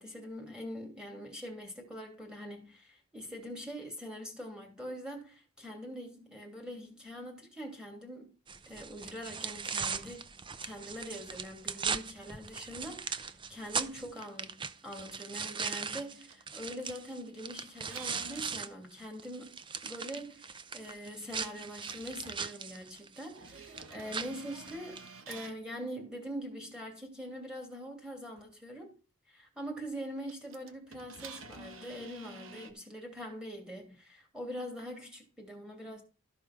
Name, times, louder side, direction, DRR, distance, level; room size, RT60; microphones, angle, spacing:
voice 1, 0.0-8.3 8.7-10.2 10.6-19.5 19.8-25.0 25.3-28.9 29.3-36.0, equal, 5° right, 2.8 m, -43 dB
sound 1, 8.5-18.7 19.0-25.1, right 6 dB, 20° right, 0.6 m, -39 dB
sound 2, 16.0-16.4 17.9-18.5 21.9-25.6 28.4-28.5 30.3-32.7, right 4 dB, 60° right, 1.4 m, -49 dB
13.5 x 5.0 x 6.1 m
head